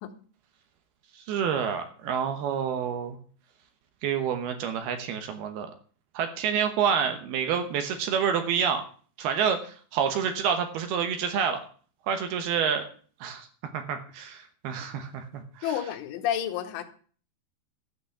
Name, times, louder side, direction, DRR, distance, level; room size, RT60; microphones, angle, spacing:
voice 1, 1.1-3.2 4.0-5.7 6.1-8.8 9.2-11.6 12.1-12.8 13.2-13.5 13.7-15.7, right 7 dB, 70° right, 2.6 m, -28 dB
voice 2, 15.6-16.8, left 10 dB, 80° left, 3.5 m, -30 dB
12.5 x 6.1 x 7.1 m
omnidirectional pair, 5.5 m